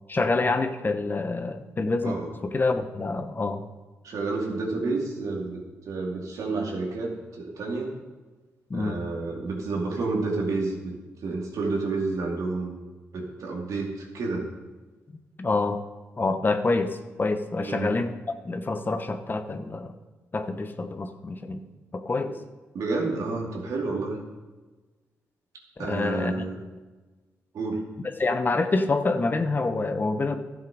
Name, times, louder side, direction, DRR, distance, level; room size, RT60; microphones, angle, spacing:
voice 1, 0.1-2.2 2.4-3.6 8.7-9.0 15.4-15.8 16.2-18.1 18.4-19.9 20.3-21.6 21.9-22.3 25.8-26.4 28.2-30.4, left 3 dB, 35° left, 8 dB, 1.0 m, -26 dB
voice 2, 4.0-7.9 8.7-10.9 11.2-12.8 13.1-14.5 17.6-17.9 22.7-24.2 25.8-26.6 27.5-27.9, right 3 dB, 75° right, 0 dB, 2.4 m, -30 dB
12.0 x 7.6 x 4.9 m, 1.2 s
supercardioid pair, 60°, 6 cm